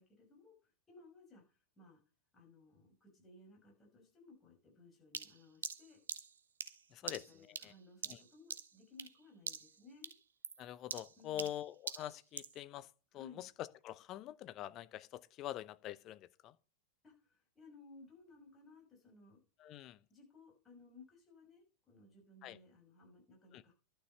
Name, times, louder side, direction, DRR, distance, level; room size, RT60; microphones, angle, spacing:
voice 1, 0.0-2.0 2.3-6.0 7.0-10.1 11.2-11.5 13.1-13.5 17.0-19.4 20.1-23.7, left 3 dB, 20° left, 5.8 m, -60 dB
sound 1, 5.1-9.2 9.5-9.8 10.0-12.6, right 7 dB, 70° right, 0.7 m, -45 dB
voice 2, 6.9-7.2 7.6-7.7 8.1-8.2 10.6-12.9 13.1-16.5 19.6-20.0 22.4-22.6 23.5-23.6, left 12 dB, 35° left, 0.6 m, -45 dB
11.5 x 6.9 x 5.6 m
figure-of-eight pair, 90°, 0 cm